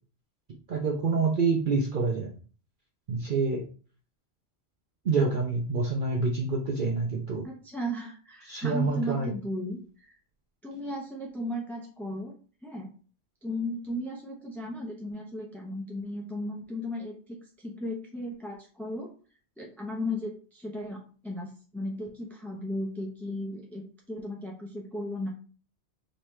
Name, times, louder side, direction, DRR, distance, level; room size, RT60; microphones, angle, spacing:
voice 1, 0.7-2.3 3.1-3.7 5.0-7.4 8.4-9.3, right 4 dB, 55° right, 0 dB, 0.7 m, -27 dB
voice 2, 7.4-10.2 10.6-12.3 12.6-12.9 13.4-19.1 19.6-25.3, left 1 dB, ahead, -1 dB, 0.4 m, -35 dB
5.2 x 2.9 x 3.1 m, 0.40 s
omnidirectional pair, 1.1 m